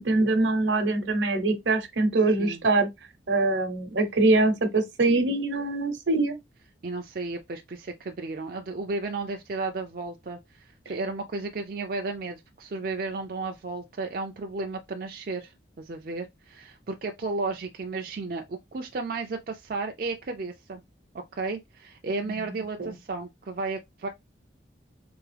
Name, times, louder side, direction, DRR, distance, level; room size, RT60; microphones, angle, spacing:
voice 1, 0.0-2.9 3.3-6.4 22.2-22.5 22.8-22.9, right 2 dB, 75° right, 0.9 m, -24 dB
voice 2, 6.8-15.5 15.8-20.8 21.3-24.1, right 3 dB, 50° right, 0.4 m, -33 dB
3.5 x 3.4 x 3.3 m
head